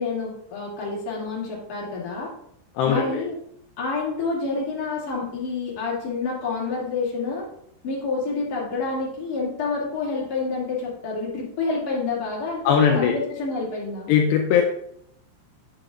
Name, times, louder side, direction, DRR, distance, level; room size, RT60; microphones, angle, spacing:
voice 1, 0.0-2.3 2.8-3.3 3.8-7.5 7.8-14.1, left 4 dB, 35° left, -5 dB, 1.6 m, -28 dB
voice 2, 2.8-3.2 12.6-13.2 14.1-14.6, left 7 dB, 90° left, 2 dB, 2.4 m, -19 dB
8.6 x 7.8 x 2.5 m, 0.72 s
omnidirectional pair, 5.6 m